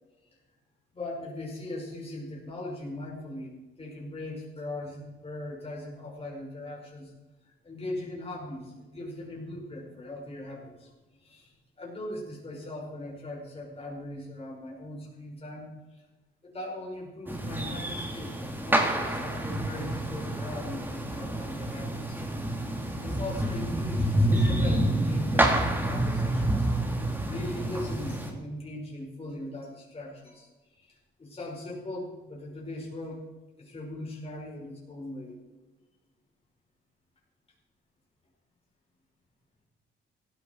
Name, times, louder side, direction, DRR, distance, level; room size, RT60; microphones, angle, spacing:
voice 1, 0.9-3.5 3.8-7.1 7.4-10.9 11.2-16.0 16.4-26.7 27.3-33.2 33.6-35.4, left 1 dB, 30° left, -3 dB, 5.5 m, -40 dB
sound 1, 17.3-28.3, right 1 dB, 10° right, 2.8 m, -28 dB
15.5 x 12.5 x 4.7 m, 1.2 s
cardioid pair, 90°, 20 cm